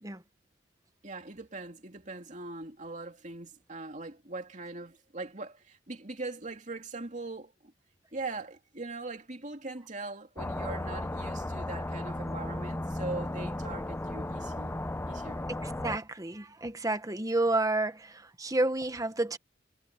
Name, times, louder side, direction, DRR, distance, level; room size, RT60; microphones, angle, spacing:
voice 1, 1.0-7.7 8.1-14.8 15.1-15.5, right 3 dB, 40° right, 2.7 m, -41 dB
sound 1, 10.4-16.0, left 1 dB, 10° left, 0.5 m, -35 dB
voice 2, 15.5-19.4, right 2 dB, 20° right, 1.2 m, -30 dB
head